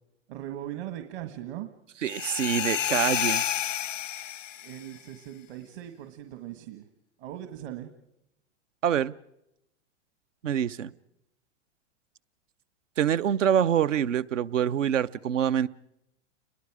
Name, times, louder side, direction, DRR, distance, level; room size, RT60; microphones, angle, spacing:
voice 1, 0.3-1.7 4.6-6.9 7.2-7.9, right 12 dB, 60° right, 7 dB, 1.8 m, -39 dB
voice 2, 2.0-3.4 8.8-9.1 10.4-10.9 13.0-15.7, right 9 dB, 85° right, 14 dB, 0.8 m, -25 dB
sound 1, 2.1-4.8, left 10 dB, 85° left, 0.8 m, -29 dB
29.5 x 21.5 x 4.9 m, 0.85 s
hypercardioid pair, 110°, 37 cm